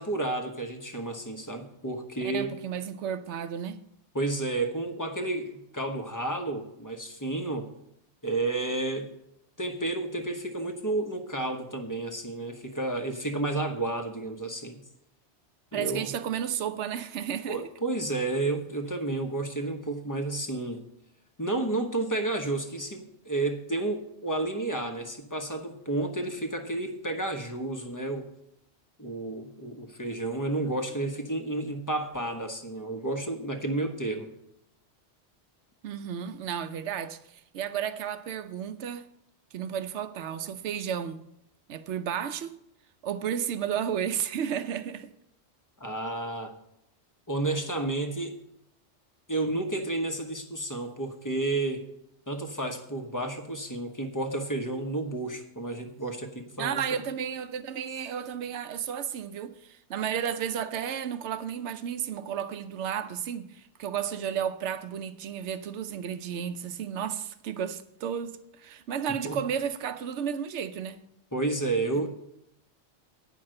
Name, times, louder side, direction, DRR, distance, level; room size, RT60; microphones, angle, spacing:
voice 1, 0.0-2.5 4.1-7.7 8.2-9.1 9.6-14.8 15.7-16.1 17.5-20.8 21.4-28.3 29.0-34.3 45.8-46.5 47.3-48.4 49.3-51.8 52.3-57.0 69.2-69.4 71.3-72.1, right 2 dB, 20° left, 0.9 m, -31 dB
voice 2, 2.2-3.8 15.7-17.6 35.8-39.1 39.5-41.3 41.7-42.5 43.0-45.1 56.6-71.0, right 8 dB, 75° right, 1.0 m, -33 dB
9.3 x 5.7 x 7.6 m
omnidirectional pair, 1.2 m